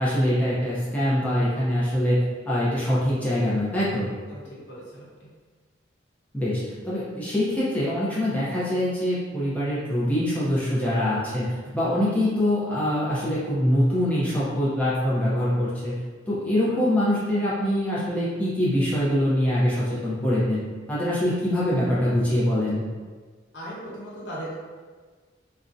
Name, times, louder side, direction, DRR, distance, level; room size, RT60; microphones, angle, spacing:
voice 1, 0.0-4.1 6.3-16.0 16.3-20.6 20.9-22.8, equal, 10° left, -9 dB, 0.4 m, -24 dB
voice 2, 4.3-5.3 16.4-16.8 23.5-24.5, equal, 75° left, -7 dB, 0.9 m, -38 dB
2.4 x 2.0 x 2.5 m, 1.5 s
head